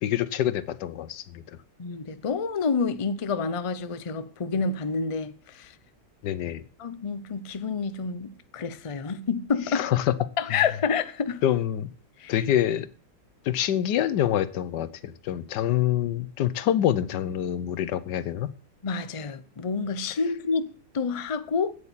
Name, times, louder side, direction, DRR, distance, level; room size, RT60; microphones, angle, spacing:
voice 1, 0.0-1.4 6.2-6.6 9.7-10.1 11.4-11.9 12.3-12.9 13.4-18.5, left 11 dB, 85° left, 1.4 m, -26 dB
voice 2, 1.8-5.7 6.8-9.9 10.4-11.4 12.2-12.3 18.8-20.7 20.9-21.7, left 5 dB, 40° left, 0.4 m, -28 dB
8.9 x 8.1 x 7.2 m
omnidirectional pair, 1.8 m